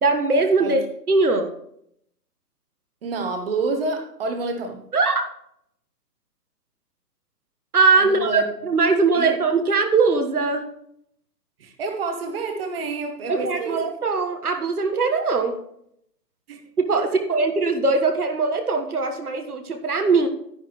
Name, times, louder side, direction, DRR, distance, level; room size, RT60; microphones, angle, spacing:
voice 1, 0.0-0.8 1.1-1.5 4.9-5.2 7.7-10.7 13.3-15.6 16.8-20.3, right 3 dB, 65° right, 5 dB, 1.5 m, -21 dB
voice 2, 3.0-4.8 8.0-8.5 9.1-9.3 11.6-13.9 16.5-16.6 17.0-17.1, right 3 dB, 35° right, 5 dB, 1.3 m, -28 dB
11.0 x 10.5 x 3.1 m, 0.72 s
figure-of-eight pair, 135°, 49 cm